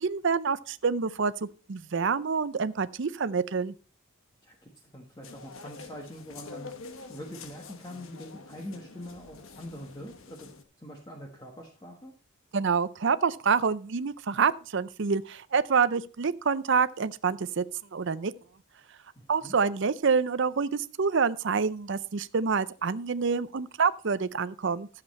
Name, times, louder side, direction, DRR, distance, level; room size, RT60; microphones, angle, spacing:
voice 1, 0.0-3.7 12.5-17.6 17.9-18.3 19.3-24.9, right 5 dB, 55° right, 0.5 m, -27 dB
voice 2, 4.4-6.7 7.1-10.5 10.8-12.1 19.1-19.5, equal, 20° left, 1.3 m, -44 dB
sound 1, 5.2-10.6, left 4 dB, 70° left, 1.1 m, -47 dB
12.5 x 7.6 x 4.2 m
head